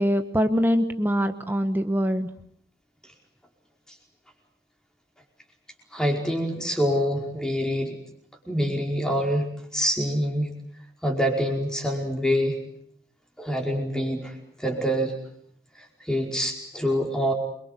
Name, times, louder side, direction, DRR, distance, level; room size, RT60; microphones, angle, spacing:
voice 1, 0.0-2.3, equal, 10° right, 7 dB, 1.2 m, -23 dB
voice 2, 5.9-8.0 8.5-9.5 9.7-10.5 11.0-12.6 13.4-15.1 15.8-17.3, equal, 5° left, 2 dB, 4.9 m, -26 dB
28.0 x 23.5 x 8.3 m, 0.66 s
head